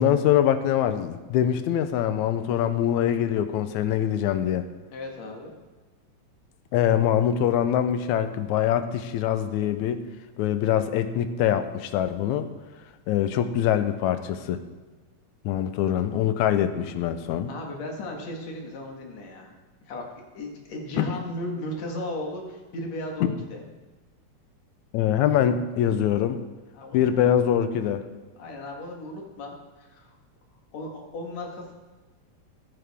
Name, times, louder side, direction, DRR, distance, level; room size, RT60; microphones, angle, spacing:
voice 1, 0.0-4.7 6.7-10.0 10.4-12.5 13.1-14.6 15.5-17.5 21.0-21.1 24.9-26.4 26.9-28.0, left 10 dB, 85° left, 10 dB, 2.1 m, -23 dB
voice 2, 4.9-5.5 17.5-19.5 19.9-20.0 20.3-23.6 26.7-27.2 28.4-30.1 30.7-31.7, left 1 dB, 65° left, 0 dB, 2.9 m, -36 dB
14.5 x 9.2 x 3.6 m, 1.3 s
omnidirectional pair, 3.3 m